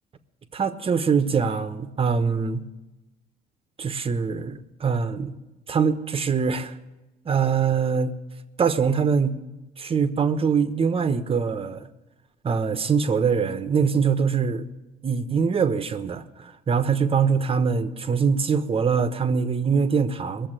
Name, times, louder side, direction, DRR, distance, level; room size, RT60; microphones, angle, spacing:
voice 1, 0.5-2.6 3.8-5.3 5.7-6.7 7.2-8.1 8.6-9.4 9.8-11.9 12.4-14.6 15.0-20.5, right 6 dB, 35° right, 1.2 m, -23 dB
20.5 x 7.5 x 9.0 m
cardioid pair, 110°, 17 cm